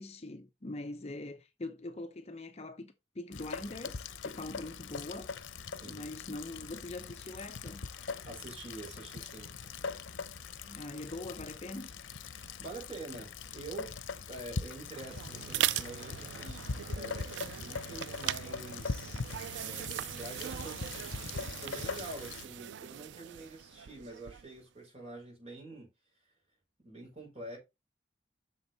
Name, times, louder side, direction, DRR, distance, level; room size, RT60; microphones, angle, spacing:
voice 1, 0.0-5.3 5.8-7.8 10.6-11.9, left 2 dB, 35° left, 0.7 m, -43 dB
Rain, 3.3-22.5, left 4 dB, 90° left, 0.7 m, -42 dB
sound 1, 7.0-22.3, left 1 dB, 5° left, 4.6 m, -63 dB
voice 2, 8.2-9.5 12.3-13.9 14.3-16.7 16.9-19.2 19.6-20.8 21.6-25.9 26.8-27.6, right 2 dB, 35° right, 4.8 m, -46 dB
sound 2, 14.7-24.6, right 11 dB, 70° right, 0.3 m, -39 dB
7.8 x 6.4 x 4.1 m
head